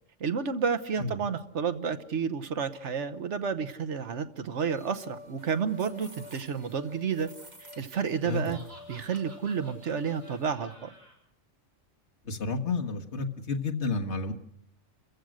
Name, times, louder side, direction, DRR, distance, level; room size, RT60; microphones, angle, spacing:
voice 1, 0.2-7.3 7.6-8.6 8.9-10.9, right 6 dB, 75° right, 9 dB, 1.4 m, -31 dB
sound 1, 4.7-10.5, left 3 dB, 35° right, 2.8 m, -49 dB
Laughter, 8.1-11.1, right 1 dB, 55° right, 6.6 m, -52 dB
voice 2, 8.2-8.6 12.2-14.3, left 3 dB, 70° left, 3 dB, 1.9 m, -31 dB
30.0 x 15.0 x 6.4 m, 0.76 s
omnidirectional pair, 1.2 m